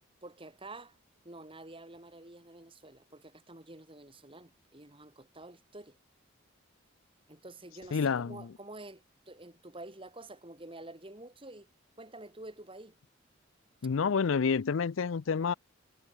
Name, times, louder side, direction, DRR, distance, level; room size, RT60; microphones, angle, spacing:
voice 1, 0.2-1.0 1.2-6.0 7.3-11.7 12.0-12.9, right 2 dB, 25° right, 3.4 m, -49 dB
voice 2, 7.9-8.5 13.8-15.5, left 5 dB, 75° left, 0.5 m, -29 dB
head